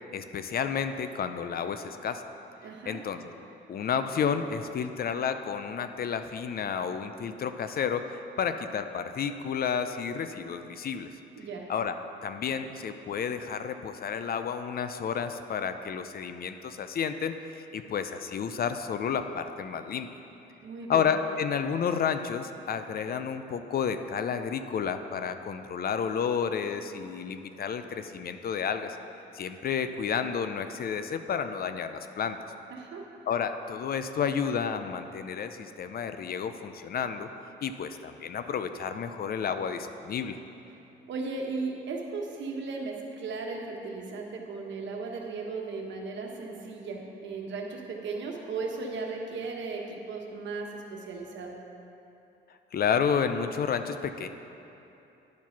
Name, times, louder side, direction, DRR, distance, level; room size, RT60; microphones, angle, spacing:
voice 1, 0.1-2.3 2.9-3.3 3.7-11.2 11.7-11.9 12.2-20.1 20.9-29.0 29.3-32.4 33.3-37.3 37.6-40.4 52.7-54.3, left 7 dB, 50° left, 9 dB, 0.5 m, -31 dB
voice 2, 2.6-3.0 11.4-11.7 20.6-21.1 32.7-33.1 41.1-51.5, right 4 dB, 70° right, 1 dB, 1.2 m, -36 dB
10.5 x 4.7 x 5.8 m, 2.9 s
cardioid pair, 90°, 20 cm